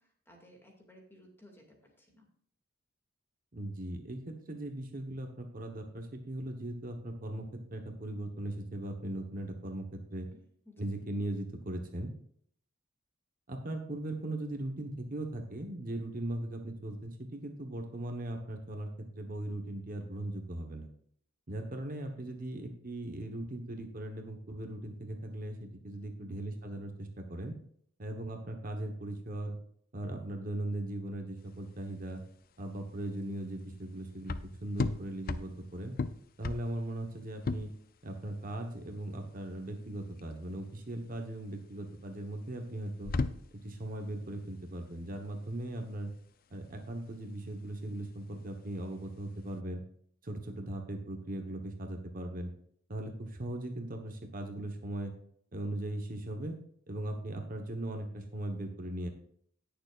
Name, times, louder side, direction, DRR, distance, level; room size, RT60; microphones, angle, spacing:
voice 1, 0.0-2.3 10.3-10.8 26.0-26.4, left 1 dB, 10° left, 1 dB, 2.2 m, -58 dB
voice 2, 3.5-7.4 7.7-10.3 10.8-12.1 13.5-20.9 21.5-27.5 28.0-29.6 29.9-32.2 32.6-34.4 34.6-35.9 36.4-37.7 38.0-43.1 43.5-46.1 46.5-49.8 50.2-52.5 52.9-55.1 55.5-56.6 56.9-59.1, right 1 dB, 45° right, 4 dB, 1.1 m, -39 dB
sound 1, 31.4-49.6, left 3 dB, 45° left, 0.5 m, -40 dB
18.5 x 6.8 x 2.5 m, 0.64 s
head